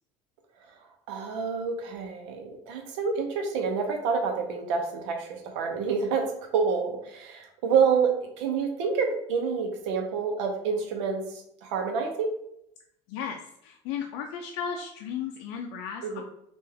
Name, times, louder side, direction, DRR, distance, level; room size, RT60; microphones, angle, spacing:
voice 1, 1.1-6.3 6.5-11.2 11.6-12.3 16.0-16.2, right 5 dB, 90° right, 3 dB, 0.8 m, -28 dB
voice 2, 13.1-16.2, left 7 dB, 80° left, 2 dB, 0.4 m, -35 dB
3.3 x 2.5 x 3.4 m, 0.76 s
supercardioid pair, 105°, 15 cm